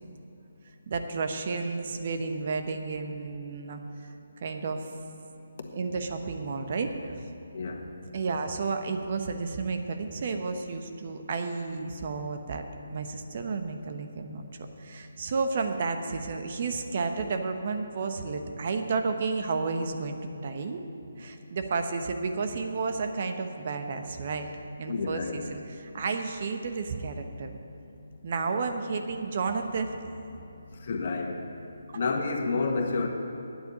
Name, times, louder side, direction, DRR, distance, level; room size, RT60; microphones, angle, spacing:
voice 1, 0.9-4.1 4.4-4.8 5.7-7.2 8.1-12.6 12.9-14.5 14.8-20.8 21.2-24.5 24.8-27.6 28.2-29.9, right 4 dB, 50° right, 6 dB, 1.0 m, -32 dB
voice 2, 24.9-25.4 30.8-31.3 31.9-33.1, left 3 dB, 50° left, 2 dB, 1.5 m, -29 dB
9.3 x 8.0 x 9.4 m, 2.9 s
figure-of-eight pair, 150°, 0 cm